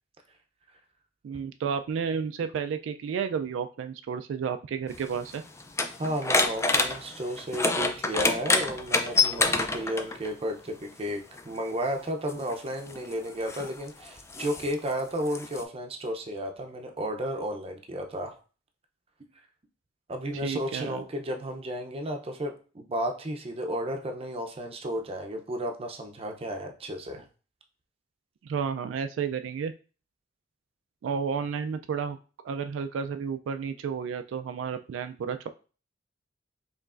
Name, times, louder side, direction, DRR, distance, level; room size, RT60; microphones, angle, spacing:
voice 1, 1.2-5.4 20.4-21.0 28.4-29.7 31.0-32.2 32.4-35.5, right 6 dB, 90° right, 8 dB, 0.3 m, -31 dB
sound 1, 4.9-10.3 11.4-11.5 12.3-15.6, left 3 dB, 15° left, 0.3 m, -27 dB
voice 2, 6.0-18.3 20.1-27.2, equal, 30° right, 4 dB, 0.5 m, -33 dB
4.7 x 3.0 x 2.4 m, 0.36 s
head